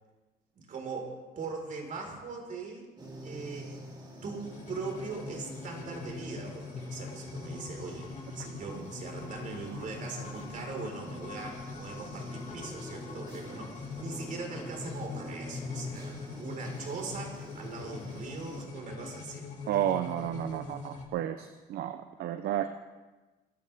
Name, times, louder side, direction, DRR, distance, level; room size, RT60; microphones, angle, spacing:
voice 1, 0.7-2.9 3.2-3.7 4.2-19.5, right 4 dB, 50° right, 1 dB, 4.9 m, -41 dB
sound 1, 3.0-18.7, right 1 dB, 25° right, 3.6 m, -46 dB
sound 2, 4.4-21.1, left 4 dB, 45° left, 2.6 m, -43 dB
voice 2, 19.7-22.7, right 11 dB, 70° right, 9 dB, 0.8 m, -32 dB
24.0 x 14.5 x 3.6 m, 1.2 s
cardioid pair, 110°, 17 cm